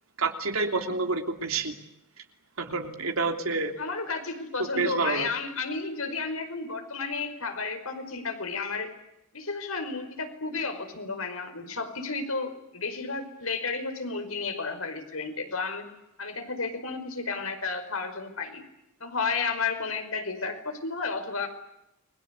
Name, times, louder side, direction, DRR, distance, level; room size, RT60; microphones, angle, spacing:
voice 1, 0.2-1.7 2.6-3.7 4.8-5.3, right 3 dB, 75° right, 5 dB, 3.2 m, -28 dB
voice 2, 3.8-8.9 9.3-15.9 16.2-18.6 19.0-21.5, left 4 dB, 80° left, 6 dB, 5.3 m, -32 dB
29.5 x 22.5 x 8.4 m, 0.85 s
head